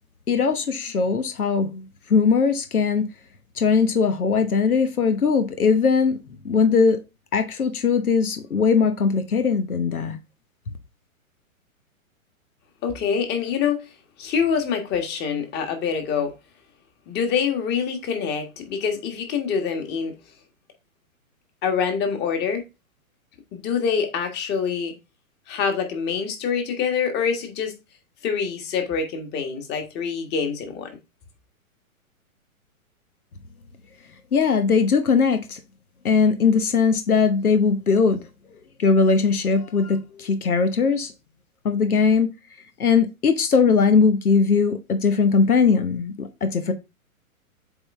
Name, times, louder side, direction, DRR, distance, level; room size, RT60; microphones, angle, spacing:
voice 1, 0.3-3.1 3.6-6.2 6.4-7.0 7.3-10.2 34.3-35.6 36.0-38.2 38.8-41.1 41.6-42.3 42.8-46.7, left 5 dB, 90° left, 1.1 m, -20 dB
voice 2, 12.8-13.9 14.2-16.3 17.1-20.1 21.6-22.7 23.5-24.9 25.5-27.7 28.2-30.9, left 6 dB, 25° left, 1.5 m, -25 dB
7.9 x 3.8 x 3.5 m
hypercardioid pair, 125°, 43 cm